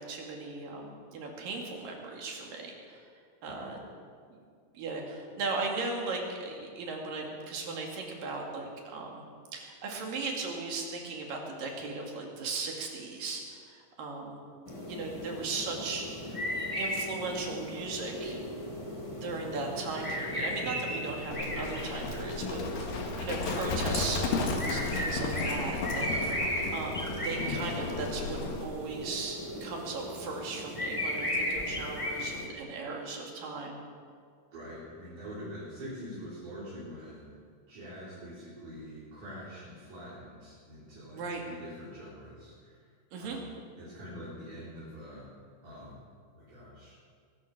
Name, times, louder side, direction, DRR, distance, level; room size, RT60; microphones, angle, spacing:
voice 1, 0.0-3.0 3.4-3.8 4.3-4.4 4.7-9.2 9.5-14.4 14.9-16.1 16.8-18.4 19.2-26.3 26.7-33.8 41.1-41.4 43.1-43.4, right 3 dB, 70° right, 0 dB, 3.9 m, -37 dB
sound 1, 14.7-32.5, equal, 20° left, 0.8 m, -36 dB
voice 2, 16.1-16.5 23.4-23.6 34.5-37.3 37.7-42.8 43.2-43.4 43.8-45.3 45.6-46.0 46.3-46.9, equal, 55° right, -10 dB, 5.4 m, -45 dB
Livestock farm animals working animals, 21.3-28.7, left 4 dB, 75° left, 3.4 m, -34 dB
23.0 x 12.5 x 4.9 m, 2.1 s
omnidirectional pair, 4.1 m